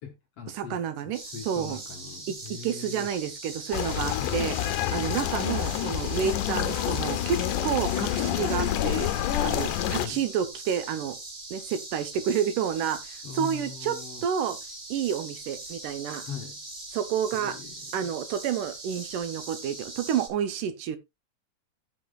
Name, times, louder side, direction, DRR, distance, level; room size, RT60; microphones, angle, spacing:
voice 1, 0.0-3.1 4.2-4.5 9.9-10.3 13.2-14.2 16.2-16.6 17.3-18.1, left 7 dB, 60° left, 1.7 m, -41 dB
voice 2, 0.5-1.2 1.5-1.8 2.6-4.5 4.9-9.1 9.4-11.2 11.5-14.0 14.2-14.6 14.9-16.2 16.9-17.6 17.9-21.0, right 8 dB, 75° right, 2.5 m, -29 dB
sound 1, 1.1-20.3, right 2 dB, 30° right, 3.7 m, -41 dB
sound 2, 3.7-10.1, left 12 dB, 75° left, 2.1 m, -28 dB
16.0 x 6.1 x 2.4 m
omnidirectional pair, 3.9 m